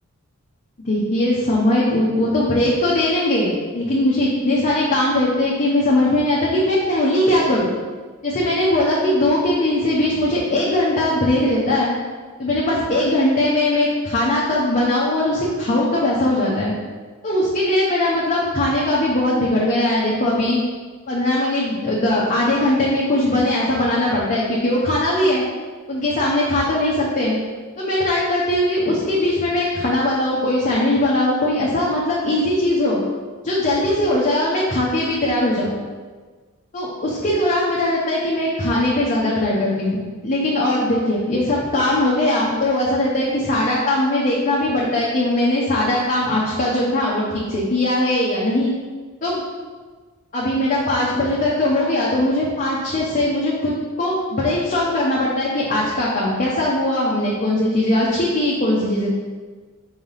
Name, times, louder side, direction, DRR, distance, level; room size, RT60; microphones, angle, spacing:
voice 1, 0.8-7.7 8.2-11.9 12.4-16.7 17.2-20.6 21.1-25.4 25.9-27.4 27.8-33.0 33.4-35.7 36.7-48.7 49.2-49.4 50.3-59.1, left 1 dB, 35° left, -6 dB, 0.9 m, -20 dB
4.8 x 3.6 x 5.6 m, 1.4 s
head